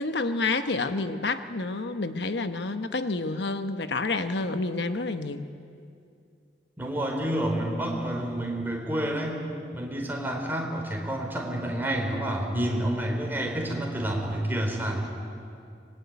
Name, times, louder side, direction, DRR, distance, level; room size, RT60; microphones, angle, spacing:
voice 1, 0.0-5.5, left 3 dB, 75° left, 9 dB, 1.1 m, -29 dB
voice 2, 6.8-9.4 9.7-15.1, right 1 dB, 10° right, 0 dB, 4.2 m, -29 dB
25.0 x 21.0 x 9.6 m, 2.4 s
head